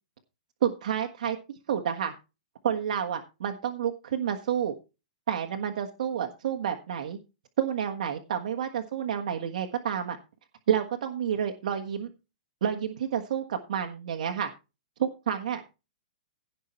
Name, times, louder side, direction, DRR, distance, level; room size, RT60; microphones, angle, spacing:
voice 1, 0.6-1.4 1.7-2.1 2.6-4.7 5.3-7.2 7.6-10.2 10.7-12.1 12.6-14.5 15.0-15.7, right 8 dB, 65° right, 5 dB, 1.5 m, -29 dB
16.5 x 5.6 x 4.5 m, 0.29 s
hypercardioid pair, 140°, 4 cm